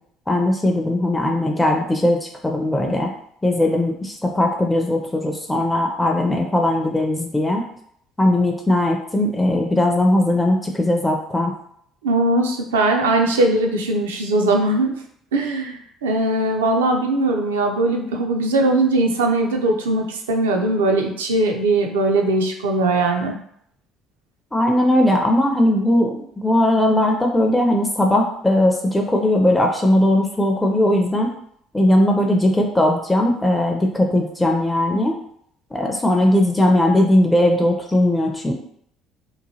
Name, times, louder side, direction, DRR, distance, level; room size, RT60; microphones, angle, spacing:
voice 1, 0.3-3.1 3.4-7.6 8.2-11.5 24.5-31.3 31.7-35.2 35.7-38.5, left 1 dB, 10° left, 1 dB, 0.4 m, -19 dB
voice 2, 12.0-14.9 15.3-23.4, right 2 dB, 75° right, 2 dB, 0.4 m, -20 dB
2.9 x 2.2 x 2.7 m, 0.68 s
figure-of-eight pair, 55°, 0 cm